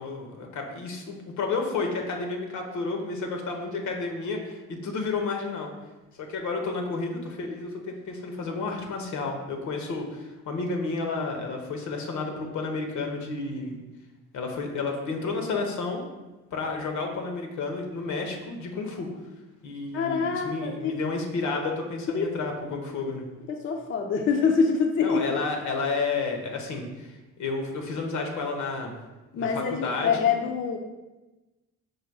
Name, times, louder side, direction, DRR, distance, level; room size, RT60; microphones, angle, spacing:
voice 1, 0.0-5.7 6.2-13.8 14.3-16.0 16.5-19.1 19.6-23.2 25.0-28.9 29.3-30.3, left 3 dB, 75° left, 3 dB, 0.8 m, -31 dB
voice 2, 19.9-20.9 22.1-22.3 23.5-25.2 29.3-30.8, left 5 dB, 45° left, 3 dB, 0.4 m, -25 dB
4.8 x 2.2 x 4.6 m, 1.1 s
cardioid pair, 90°, 30 cm